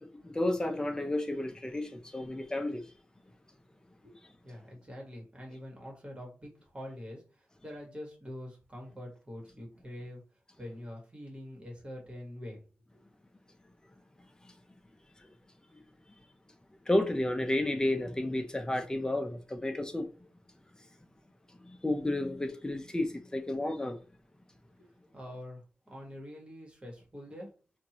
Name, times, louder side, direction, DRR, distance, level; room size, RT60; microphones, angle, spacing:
voice 1, 0.0-2.9 15.2-15.3 16.9-20.1 21.6-24.0, left 1 dB, 15° left, 0.7 m, -32 dB
voice 2, 4.4-10.2 10.6-12.6 24.8-24.9 25.1-27.5, left 1 dB, 25° right, 1.7 m, -45 dB
4.4 x 2.7 x 3.0 m
wide cardioid pair, 95°, 4 cm